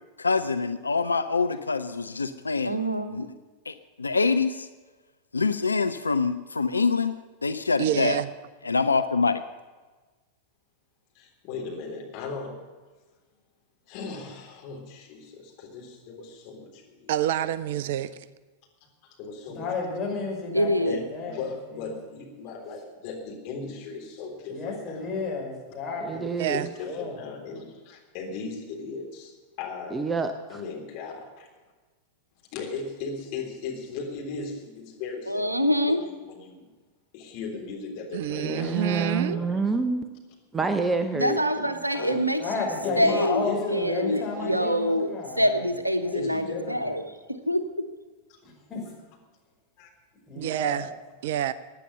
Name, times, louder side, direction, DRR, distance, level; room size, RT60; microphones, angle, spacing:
voice 1, 0.2-2.8 3.1-3.3 3.7-4.7 5.3-7.1 7.4-8.2 8.6-9.4, left 4 dB, 80° left, 11 dB, 0.5 m, -25 dB
voice 2, 2.6-3.3 20.5-21.0 35.3-36.0 41.1-42.6 43.0-45.1 45.4-47.0 47.3-47.9, equal, 85° right, 10 dB, 1.0 m, -25 dB
voice 3, 7.8-8.3 17.1-18.1 26.4-26.7 38.1-39.4 50.4-50.9 51.2-51.5, right 11 dB, 55° right, 17 dB, 0.5 m, -27 dB
voice 4, 11.1-12.6 13.9-17.2 19.0-19.7 20.8-25.1 26.5-29.3 29.6-30.0 30.5-31.5 32.5-36.7 37.1-39.5 41.6-41.7 41.9-42.2 42.8-44.5 46.1-46.7 49.8-49.9, left 4 dB, 45° left, 1 dB, 3.7 m, -37 dB
voice 5, 19.5-21.4 21.7-21.9 24.5-26.3 26.8-27.1 42.4-45.7 46.0-46.9 48.4-48.9 50.3-50.9, left 4 dB, 20° left, -2 dB, 5.6 m, -33 dB
voice 6, 26.0-26.7 29.9-30.6 38.4-40.1 40.5-41.4, right 4 dB, 15° right, 9 dB, 0.7 m, -27 dB
17.0 x 9.9 x 6.7 m, 1.3 s
figure-of-eight pair, 90°, 0 cm